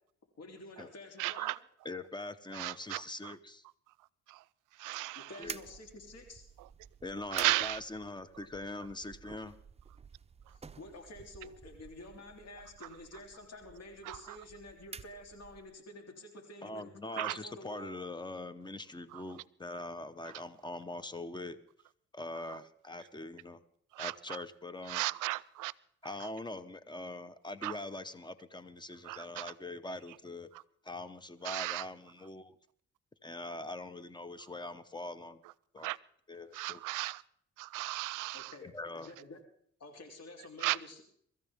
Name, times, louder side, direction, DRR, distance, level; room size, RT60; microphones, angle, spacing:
voice 1, 0.4-1.5 5.2-6.4 10.5-17.9 38.3-39.4 39.8-41.0, left 2 dB, 55° left, 3.5 m, -50 dB
voice 2, 1.2-1.6 2.5-3.3 4.3-4.4 4.7-5.3 7.3-7.8 14.0-14.4 17.1-17.4 19.1-19.2 20.2-20.3 22.5-22.6 23.9-24.4 24.9-25.7 27.6-27.8 29.0-29.5 31.4-31.9 35.8-36.0 36.5-37.2 37.6-38.5 40.6-40.8, right 19 dB, 85° right, 0.5 m, -35 dB
voice 3, 1.8-3.6 5.4-5.6 7.0-9.6 16.6-21.6 22.1-23.6 24.0-25.0 26.0-30.5 30.8-32.6 33.2-35.4 35.7-35.9 36.3-36.8 38.6-39.1, left 2 dB, 15° left, 1.0 m, -43 dB
sound 1, 5.4-15.8, right 5 dB, 20° right, 0.6 m, -51 dB
24.0 x 14.0 x 3.6 m
cardioid pair, 90°, 30 cm